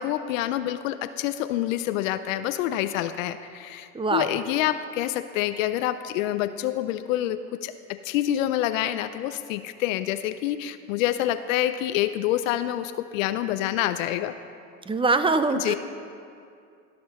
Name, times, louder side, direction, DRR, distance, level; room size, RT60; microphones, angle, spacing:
voice 1, 0.0-14.3 15.6-15.7, left 13 dB, 80° left, 11 dB, 0.5 m, -27 dB
voice 2, 3.9-4.3 14.9-15.7, right 3 dB, 15° right, 10 dB, 0.5 m, -23 dB
16.5 x 6.0 x 4.2 m, 2.4 s
hypercardioid pair, 75°, 40 cm